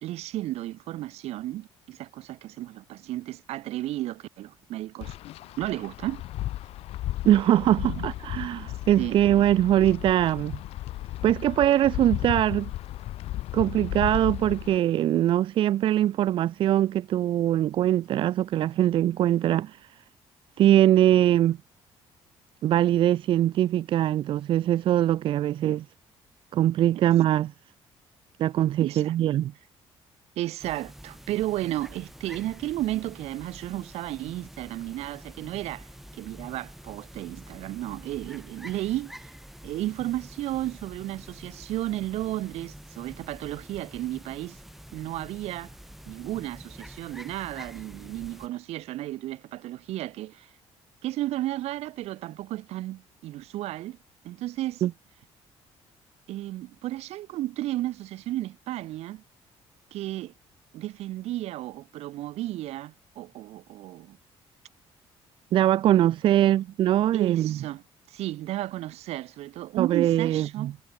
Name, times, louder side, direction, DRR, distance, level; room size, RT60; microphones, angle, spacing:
voice 1, 0.0-5.2 5.6-6.2 7.7-8.1 9.0-9.2 28.8-29.2 30.4-39.3 39.6-44.6 44.9-45.7 46.1-50.5 51.0-54.0 54.2-54.8 56.3-59.2 59.9-60.3 60.7-64.2 67.1-67.8 68.1-70.7, right 15 dB, 80° right, 2.0 m, -33 dB
Wind, 5.0-14.8, left 15 dB, 75° left, 1.1 m, -35 dB
voice 2, 7.2-10.6 11.2-12.7 13.5-19.8 20.6-21.6 22.6-25.8 26.5-27.5 28.4-29.5 54.8-54.9 65.5-67.6 69.8-70.7, right 12 dB, 55° right, 0.7 m, -22 dB
sound 1, 30.6-48.5, equal, ahead, 3.3 m, -46 dB
cardioid pair, 180°, 11 cm